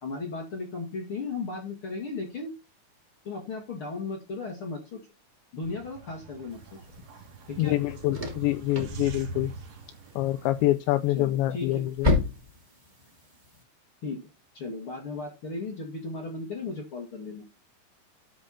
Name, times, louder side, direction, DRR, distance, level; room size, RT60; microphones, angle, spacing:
voice 1, 0.0-2.5 3.2-5.0 5.5-6.6 7.5-7.8 11.1-11.8 14.0-14.2 14.5-17.4, left 3 dB, 60° left, 1.4 m, -35 dB
sound 1, 5.6-10.7, right 3 dB, 65° right, 4.4 m, -42 dB
sound 2, 6.5-13.6, left 3 dB, 15° right, 1.8 m, -34 dB
voice 2, 7.6-9.5 10.2-12.1, left 16 dB, 85° left, 2.6 m, -26 dB
13.0 x 5.1 x 4.2 m
omnidirectional pair, 5.7 m